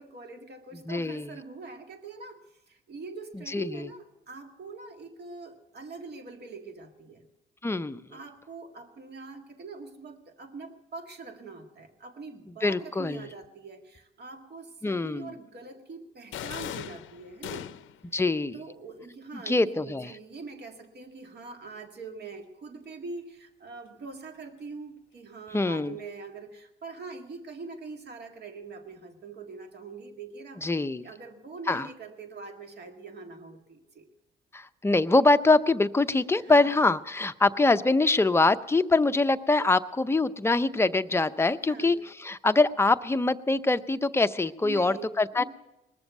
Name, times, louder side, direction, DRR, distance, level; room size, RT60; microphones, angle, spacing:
voice 1, 0.0-2.4 2.7-7.2 8.1-17.7 18.5-30.7 31.0-34.1 36.4-36.7 41.7-42.0 44.6-45.5, right 4 dB, 55° right, 5 dB, 1.9 m, -43 dB
voice 2, 0.9-1.3 3.5-3.9 7.6-8.0 12.6-13.2 14.8-15.3 18.1-18.6 19.3-20.1 25.5-26.0 30.6-31.1 31.7-31.9 34.5-45.4, left 3 dB, 10° left, 11 dB, 0.6 m, -24 dB
sound 1, 16.3-18.1, left 11 dB, 80° left, 0.6 m, -38 dB
20.0 x 7.1 x 8.1 m, 0.94 s
cardioid pair, 90°, 20 cm